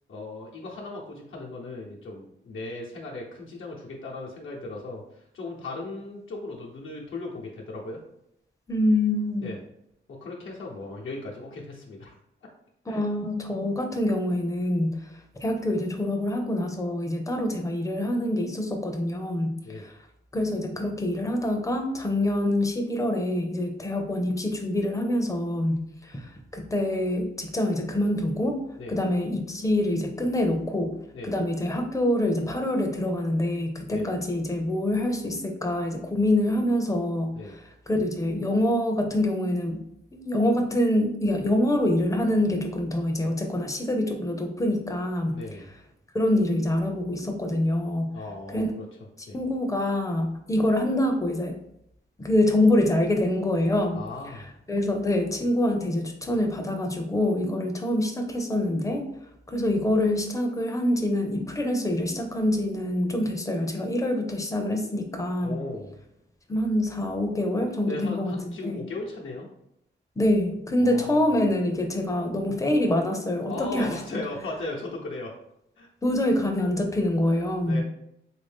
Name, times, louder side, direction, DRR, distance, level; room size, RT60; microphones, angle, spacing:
voice 1, 0.1-8.0 9.4-9.6 10.1-12.1 12.9-13.0 19.6-19.8 28.8-29.0 31.1-31.3 33.9-34.1 37.3-37.5 45.3-45.7 48.1-48.8 49.3-49.4 53.9-54.5 65.4-66.0 67.8-69.5 70.8-71.3 73.5-75.3 75.8-75.9 77.6-77.8, left 2 dB, 80° left, -3 dB, 0.8 m, -37 dB
voice 2, 8.7-9.5 12.9-14.9 15.4-19.5 19.8-19.9 20.3-28.6 28.9-30.9 31.2-39.8 40.1-45.4 46.1-48.1 48.5-48.7 49.3-51.6 52.2-54.0 54.3-54.4 54.7-59.1 59.5-65.6 66.5-68.8 70.2-74.0 76.0-77.8, left 1 dB, 15° left, 4 dB, 0.5 m, -25 dB
3.5 x 2.6 x 3.5 m, 0.77 s
wide cardioid pair, 135°, 20 cm